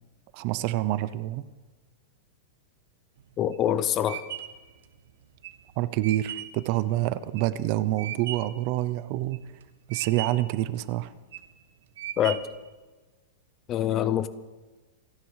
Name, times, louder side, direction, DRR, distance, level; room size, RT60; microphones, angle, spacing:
voice 1, 0.3-1.4 5.8-9.4 9.9-11.1, right 15 dB, 35° right, 16 dB, 0.6 m, -27 dB
sound 1, 3.2-8.6 9.1-9.6 9.9-10.6 11.1-11.6 12.0-12.7, right 12 dB, 65° right, 1.5 m, -38 dB
voice 2, 3.4-4.2 12.2-12.4 13.7-14.3, left 10 dB, 20° left, 15 dB, 0.6 m, -25 dB
28.0 x 10.5 x 4.8 m, 1.3 s
supercardioid pair, 175°, 0 cm